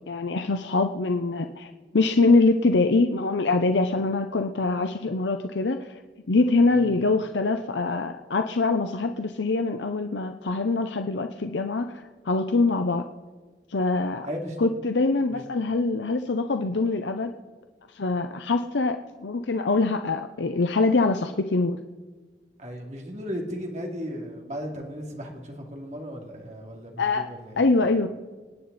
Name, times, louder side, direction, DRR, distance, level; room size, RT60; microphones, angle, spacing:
voice 1, 0.1-6.0 6.3-13.1 13.7-14.3 14.6-17.3 17.9-21.8 27.0-27.3 27.6-28.1, left 3 dB, 85° left, 7 dB, 0.7 m, -24 dB
voice 2, 14.2-14.7 15.3-15.4 22.6-27.6, equal, 40° right, 1 dB, 2.8 m, -36 dB
26.5 x 9.5 x 4.2 m, 1.4 s
head